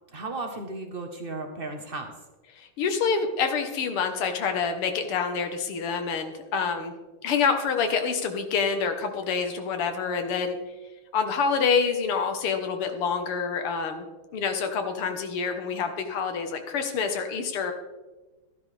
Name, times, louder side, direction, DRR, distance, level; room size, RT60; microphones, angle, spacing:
voice 1, 0.1-2.1, right 2 dB, 45° right, 3 dB, 0.7 m, -35 dB
voice 2, 2.6-6.9 7.2-10.6 11.1-14.1 14.3-17.7, left 5 dB, 90° left, 6 dB, 2.0 m, -27 dB
12.5 x 11.5 x 3.3 m, 1.2 s
omnidirectional pair, 2.4 m